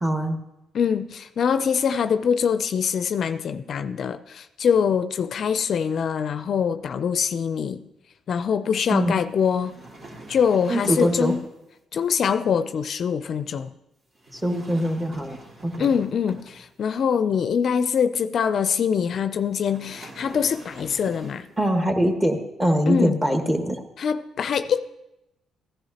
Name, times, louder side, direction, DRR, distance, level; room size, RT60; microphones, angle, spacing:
voice 1, 0.0-0.4 8.9-9.1 10.7-11.3 14.3-15.4 15.6-15.9 21.6-23.8, equal, 15° right, 1.6 m, -23 dB
voice 2, 0.7-7.8 8.3-9.8 10.3-11.4 11.9-13.7 15.8-21.5 22.9-23.2 24.0-24.9, left 7 dB, 60° left, 0.4 m, -24 dB
sound 1, 9.3-11.6 14.2-16.9 19.6-21.6, right 1 dB, 50° right, 2.6 m, -45 dB
15.5 x 11.0 x 2.9 m
cardioid pair, 90°, 0 cm